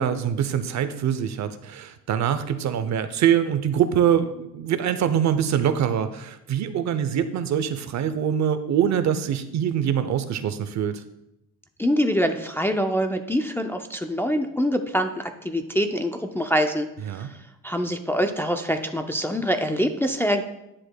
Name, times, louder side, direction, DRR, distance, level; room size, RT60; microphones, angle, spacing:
voice 1, 0.0-11.0 17.1-17.3, right 9 dB, 60° right, 11 dB, 0.6 m, -24 dB
voice 2, 11.8-17.3 17.6-20.4, equal, 5° left, 5 dB, 0.4 m, -25 dB
9.9 x 7.6 x 2.2 m, 0.87 s
cardioid pair, 140°, 32 cm